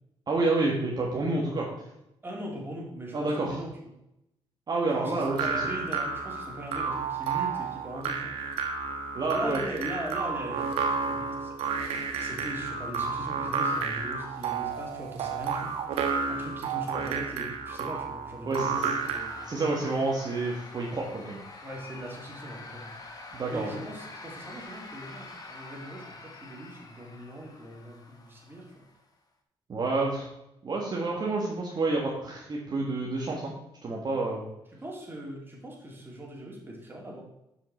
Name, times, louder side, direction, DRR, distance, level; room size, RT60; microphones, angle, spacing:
voice 1, 0.3-1.7 3.1-3.6 4.7-5.6 9.1-9.6 18.4-18.9 19.4-21.4 23.3-23.7 29.7-30.3 30.6-33.5 33.8-34.4, right 3 dB, 45° right, -3 dB, 1.6 m, -29 dB
voice 2, 2.2-3.9 5.0-8.3 9.3-19.5 21.6-28.8 34.7-37.2, right 1 dB, 20° right, -2 dB, 2.8 m, -40 dB
sound 1, 5.2-19.4, right 5 dB, 85° right, 1.1 m, -31 dB
sound 2, 19.0-29.1, left 3 dB, 40° left, 1.4 m, -46 dB
7.2 x 5.7 x 4.3 m, 0.84 s
cardioid pair, 80°, 10 cm